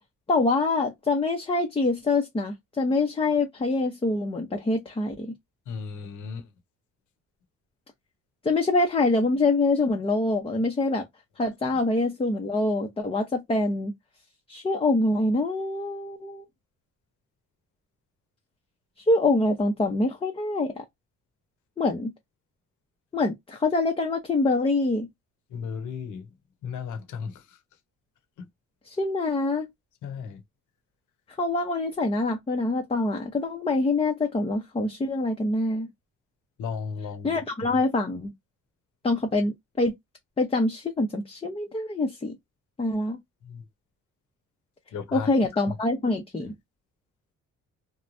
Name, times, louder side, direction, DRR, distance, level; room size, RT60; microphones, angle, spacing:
voice 1, 0.3-5.3 8.4-11.1 11.4-13.9 14.5-16.4 19.1-20.8 21.8-22.1 23.1-25.1 28.9-29.7 31.4-35.9 37.2-38.3 39.0-39.9 40.4-42.3 42.8-43.2 45.1-46.5, left 2 dB, 20° left, 0.6 m, -25 dB
voice 2, 5.7-6.5 25.5-26.3 26.6-27.6 28.4-28.5 30.0-30.4 36.6-37.4 43.4-43.7 44.9-45.3 46.4-46.5, left 6 dB, 80° left, 0.9 m, -35 dB
3.1 x 2.2 x 2.5 m
cardioid pair, 90°, 30 cm